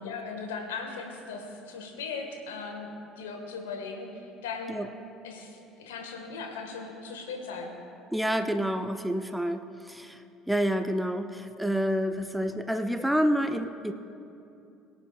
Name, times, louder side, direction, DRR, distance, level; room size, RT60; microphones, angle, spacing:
voice 1, 0.0-2.9 3.2-4.8 5.2-7.7, left 4 dB, 70° left, 2 dB, 1.6 m, -38 dB
voice 2, 8.1-10.2 10.5-13.9, equal, ahead, 8 dB, 0.6 m, -28 dB
22.5 x 8.6 x 2.4 m, 2.7 s
figure-of-eight pair, 60°, 0 cm